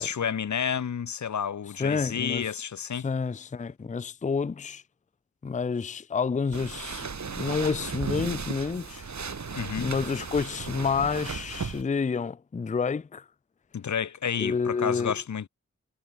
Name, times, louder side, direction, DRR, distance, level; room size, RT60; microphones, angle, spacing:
voice 1, 0.0-3.1 9.5-9.9 13.7-15.5, left 7 dB, 75° left, 0.7 m, -30 dB
voice 2, 1.8-2.5 3.0-4.8 5.4-7.1 7.4-9.0 9.8-13.2 14.4-15.1, left 5 dB, 25° left, 0.4 m, -29 dB
sound 1, 6.5-11.8, right 5 dB, 70° right, 1.5 m, -35 dB
cardioid pair, 45°, 29 cm